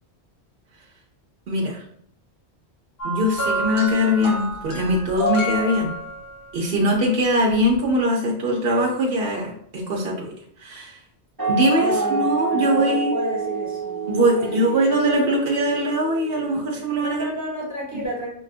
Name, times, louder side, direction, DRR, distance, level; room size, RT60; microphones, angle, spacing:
voice 1, 1.5-1.8 3.0-5.9 6.5-10.3 10.6-11.0 11.5-13.2 14.1-17.3 17.9-18.0, equal, 65° right, -1 dB, 0.8 m, -22 dB
sound 1, 3.0-6.5 7.6-7.8, equal, 60° left, 1.4 m, -28 dB
sound 2, 11.4-16.8, right 5 dB, 35° right, 0.3 m, -28 dB
voice 2, 11.8-15.0 17.0-18.3, equal, 15° right, -4 dB, 1.0 m, -31 dB
5.3 x 2.4 x 2.4 m, 0.68 s
omnidirectional pair, 1.1 m